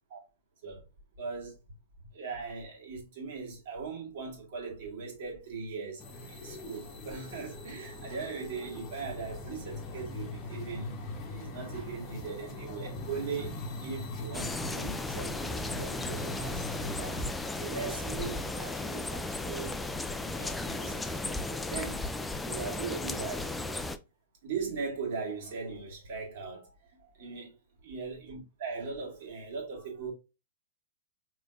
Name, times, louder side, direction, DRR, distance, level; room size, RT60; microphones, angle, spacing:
voice 1, 1.2-1.6 2.1-6.0 6.3-11.0 11.3-13.5 13.8-19.8 20.2-22.0 22.4-23.6 24.4-26.7 27.0-27.5 27.8-30.1, right 5 dB, 50° right, 1.9 m, -39 dB
sound 1, 6.0-21.3, left 2 dB, 30° left, 1.1 m, -42 dB
sound 2, 14.3-24.0, left 2 dB, 10° left, 0.4 m, -35 dB
5.0 x 3.1 x 2.5 m
figure-of-eight pair, 105°, 0 cm